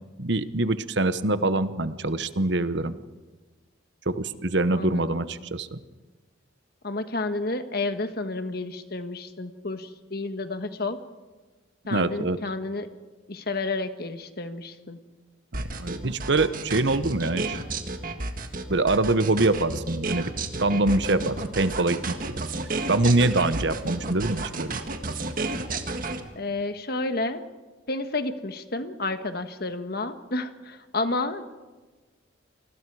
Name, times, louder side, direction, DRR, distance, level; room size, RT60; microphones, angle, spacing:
voice 1, 0.2-3.0 4.1-5.8 11.9-12.4 15.5-17.6 18.7-22.4 22.9-24.8, right 2 dB, 60° right, 12 dB, 1.0 m, -24 dB
voice 2, 4.7-5.2 6.8-11.0 11.9-12.9 13.3-15.0 26.3-27.4 27.9-31.5, left 2 dB, 50° left, 9 dB, 1.5 m, -30 dB
sound 1, 15.5-26.2, right 3 dB, 45° right, 1.8 m, -31 dB
29.0 x 20.5 x 4.8 m, 1.2 s
head